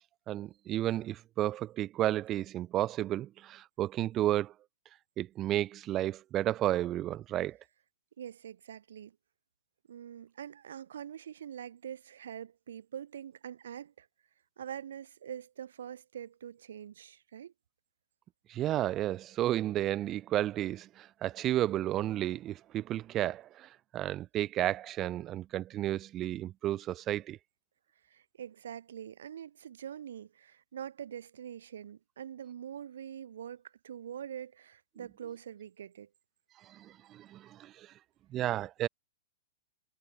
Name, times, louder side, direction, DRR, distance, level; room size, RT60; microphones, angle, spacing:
voice 1, 0.3-4.5 5.2-7.6 18.5-27.4 36.7-37.9 38.3-38.9, right 13 dB, 25° right, 0.3 m, -32 dB
voice 2, 8.2-9.2 9.9-14.1 14.6-17.5 28.1-36.1, right 9 dB, 85° right, 3.9 m, -44 dB
hypercardioid pair, 150°, 0 cm